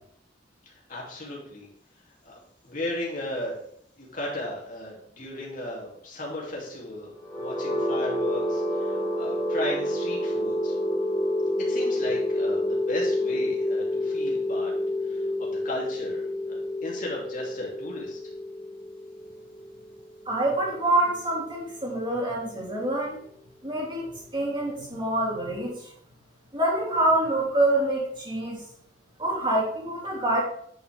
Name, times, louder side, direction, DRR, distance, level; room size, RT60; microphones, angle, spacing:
voice 1, 0.9-1.7 2.2-2.4 2.6-3.6 4.0-7.1 7.4-10.7 11.7-14.7 15.0-18.2, left 1 dB, 45° left, -3 dB, 2.9 m, -35 dB
sound 1, 7.2-21.1, left 1 dB, 10° left, 3.1 m, -28 dB
voice 2, 20.2-23.2 23.6-25.7 26.5-28.6 29.2-30.4, right 1 dB, 25° right, -4 dB, 3.1 m, -26 dB
9.8 x 6.2 x 3.5 m, 0.65 s
head